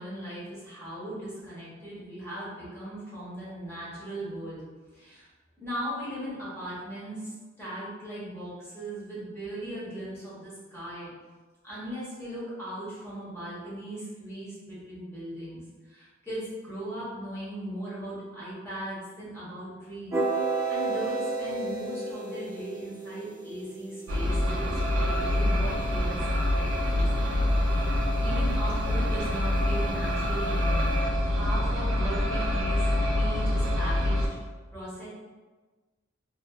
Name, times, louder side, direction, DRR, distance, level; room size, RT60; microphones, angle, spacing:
voice 1, 0.0-4.6 4.9-5.3 5.6-11.1 11.6-20.2 20.7-27.4 27.8-30.9 31.3-32.9 33.1-34.4 34.7-35.1, right 1 dB, 15° left, -10 dB, 1.0 m, -38 dB
sound 1, 20.1-26.2, right 3 dB, 15° right, 0.8 m, -33 dB
sound 2, 24.1-34.3, left 1 dB, 75° right, 0.5 m, -26 dB
2.6 x 2.4 x 2.3 m, 1.3 s
head